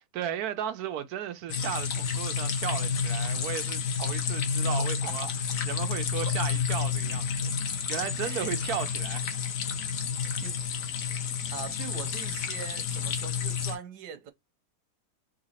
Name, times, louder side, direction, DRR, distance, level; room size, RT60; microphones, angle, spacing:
voice 1, 0.1-5.3 5.7-9.3, right 9 dB, 70° right, 1.1 m, -35 dB
sound 1, 1.5-13.8, left 6 dB, 80° left, 1.6 m, -30 dB
voice 2, 4.8-5.3 6.2-6.4 8.2-8.5 10.2-10.6 11.5-14.3, right 8 dB, 85° right, 1.4 m, -41 dB
4.0 x 2.8 x 4.2 m
omnidirectional pair, 1.7 m